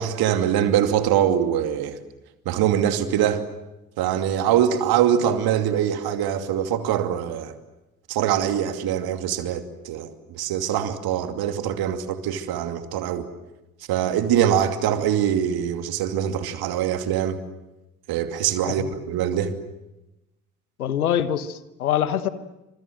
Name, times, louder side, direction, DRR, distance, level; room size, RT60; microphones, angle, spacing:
voice 1, 0.0-2.0 2.4-3.4 4.0-7.5 8.1-13.3 13.9-17.4 18.1-19.6, right 10 dB, 55° right, 2.7 m, -23 dB
voice 2, 20.8-22.3, left 10 dB, 80° left, 1.3 m, -24 dB
29.0 x 26.5 x 7.7 m
figure-of-eight pair, 50°, 43 cm